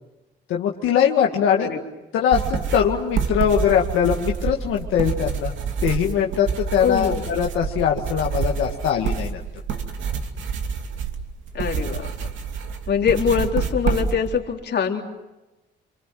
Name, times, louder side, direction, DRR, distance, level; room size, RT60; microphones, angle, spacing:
voice 1, 0.5-1.7 2.1-5.5 5.8-9.4, left 8 dB, 90° left, 0 dB, 2.0 m, -21 dB
sound 1, 2.3-14.4, right 6 dB, 75° right, 2.8 m, -27 dB
voice 2, 6.8-7.3 11.5-12.3 12.9-15.0, left 7 dB, 60° left, 2 dB, 3.5 m, -23 dB
27.0 x 24.5 x 7.7 m, 1.0 s
cardioid pair, 90°, 20 cm